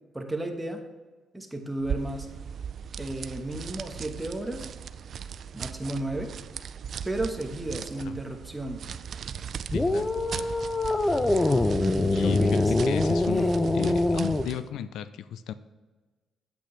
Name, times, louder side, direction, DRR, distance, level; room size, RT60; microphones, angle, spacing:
voice 1, 0.1-0.8 1.3-2.3 3.0-4.7 5.5-6.3 7.0-8.8 11.8-12.7 13.3-13.8, right 1 dB, 10° right, 3 dB, 1.2 m, -33 dB
sound 1, 1.8-14.7, right 7 dB, 60° right, 0.3 m, -39 dB
voice 2, 9.7-10.6 12.1-15.5, left 10 dB, 80° left, 13 dB, 0.4 m, -35 dB
sound 2, 9.7-14.5, left 2 dB, 15° left, 0.5 m, -24 dB
8.8 x 7.9 x 3.3 m, 1.3 s
cardioid pair, 90°, 0 cm